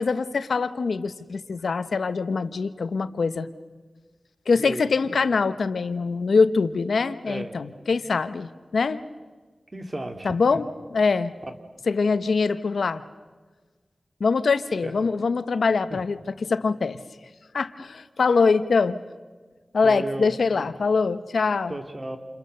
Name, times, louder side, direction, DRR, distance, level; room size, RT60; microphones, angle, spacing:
voice 1, 0.0-3.5 4.5-9.0 10.2-11.3 11.9-13.0 14.2-16.2 16.5-17.0 17.5-19.0 19.7-21.7, left 4 dB, 85° left, 12 dB, 0.9 m, -23 dB
voice 2, 4.5-5.2 7.2-7.6 9.7-10.6 11.4-11.5 14.8-14.9 15.9-16.0 19.8-20.7 21.7-22.2, right 1 dB, 35° right, 6 dB, 2.7 m, -34 dB
29.0 x 29.0 x 6.7 m, 1.4 s
wide cardioid pair, 70°, 0 cm